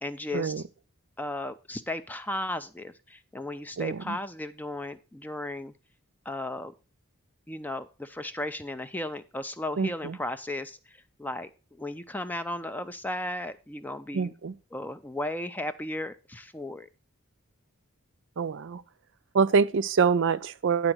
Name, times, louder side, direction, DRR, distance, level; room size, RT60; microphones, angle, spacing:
voice 1, 0.0-0.6 1.2-5.7 6.3-6.7 7.5-11.5 11.8-14.3 14.7-16.9, left 1 dB, 10° left, 0.4 m, -35 dB
voice 2, 3.8-4.2 9.8-10.2 14.1-14.5 18.4-18.8 19.3-20.9, right 5 dB, 55° right, 0.4 m, -25 dB
10.0 x 3.9 x 6.1 m
head